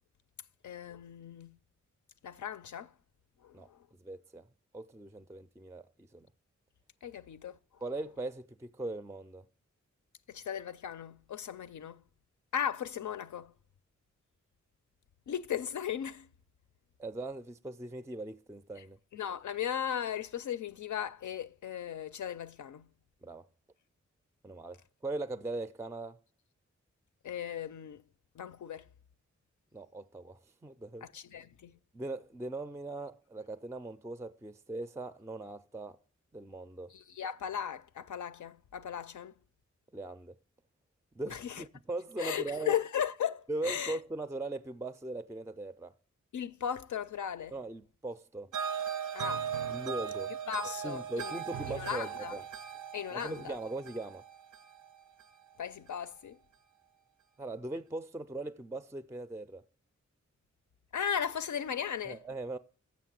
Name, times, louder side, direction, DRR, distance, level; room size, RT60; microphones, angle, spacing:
voice 1, 0.6-1.6 2.2-2.9 3.4-3.8 7.0-7.6 10.3-12.0 12.5-13.5 15.3-16.3 18.8-18.9 19.1-22.9 27.2-28.0 28.4-28.9 31.0-31.7 36.9-39.3 41.3-41.6 42.2-44.0 46.3-47.5 49.1-49.5 50.5-51.3 51.7-52.4 52.9-53.6 55.6-56.4 60.9-62.2, left 9 dB, 80° left, 0.5 m, -37 dB
voice 2, 4.0-4.5 4.7-6.3 7.8-9.4 17.0-19.0 23.2-23.5 24.4-26.2 29.7-31.1 31.9-36.0 36.3-36.9 39.9-40.3 41.1-42.8 43.5-45.9 47.5-48.5 49.7-50.3 50.8-52.4 53.1-54.2 57.4-59.6 62.0-62.6, right 2 dB, 10° right, 0.4 m, -40 dB
sound 1, 48.5-55.7, right 8 dB, 80° right, 0.6 m, -38 dB
7.6 x 5.8 x 7.4 m
wide cardioid pair, 75°, 30 cm